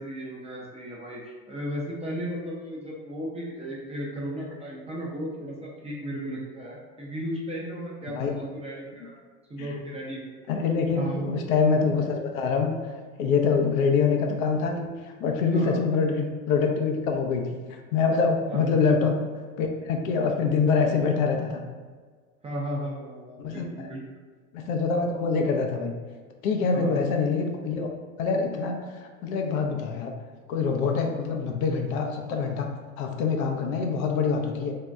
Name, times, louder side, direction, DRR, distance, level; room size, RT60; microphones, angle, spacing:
voice 1, 0.0-9.2 9.5-10.5 10.9-11.4 13.4-13.7 15.5-15.8 18.5-18.8 22.4-24.0 26.7-27.0, equal, 15° right, -4 dB, 0.5 m, -35 dB
voice 2, 10.5-12.7 13.2-17.4 17.7-19.2 19.6-21.6 23.4-23.9 24.5-25.9 26.4-27.9 28.2-30.1 30.5-32.7 33.0-34.7, left 5 dB, 65° left, 3 dB, 0.6 m, -25 dB
2.7 x 2.2 x 3.3 m, 1.5 s
hypercardioid pair, 95°, 45 cm